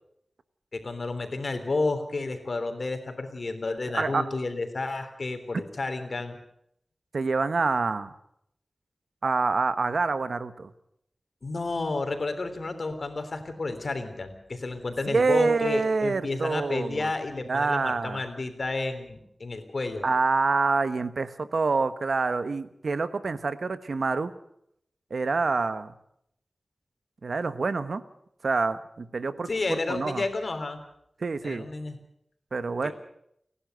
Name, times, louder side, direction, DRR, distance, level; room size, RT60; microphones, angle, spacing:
voice 1, 0.7-6.4 11.4-20.1 29.5-30.8 31.4-32.0 32.8-32.9, left 3 dB, 65° left, 7 dB, 3.5 m, -31 dB
voice 2, 7.1-8.1 9.2-10.7 15.1-17.1 17.5-18.2 20.0-24.3 25.1-25.9 27.2-28.0 28.4-29.5 29.9-30.2 31.2-31.7 32.5-32.9, right 4 dB, 75° right, 13 dB, 1.2 m, -26 dB
30.0 x 11.5 x 8.0 m, 0.74 s
cardioid pair, 45°, 0 cm